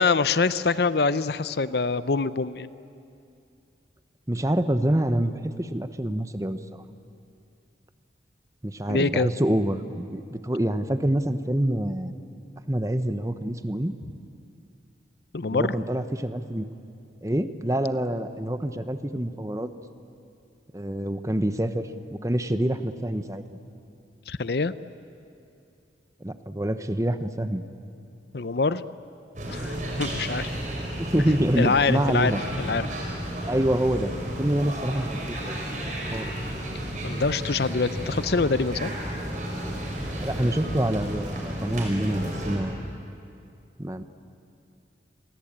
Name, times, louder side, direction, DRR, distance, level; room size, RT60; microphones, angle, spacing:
voice 1, 0.0-2.7 8.9-9.3 15.3-15.7 24.3-24.7 28.3-28.8 29.5-30.5 31.6-32.9 37.0-38.9, left 4 dB, 60° left, 15 dB, 0.6 m, -25 dB
voice 2, 4.3-6.8 8.6-12.1 12.7-13.9 15.5-16.7 17.2-19.7 20.7-23.4 26.2-27.6 31.0-32.4 33.5-35.6 36.1-36.3 40.2-42.8 43.8-44.0, right 1 dB, 15° right, 11 dB, 0.9 m, -26 dB
sound 1, 29.4-42.6, right 1 dB, 45° right, 5.6 m, -32 dB
29.5 x 22.5 x 8.8 m, 2.6 s
head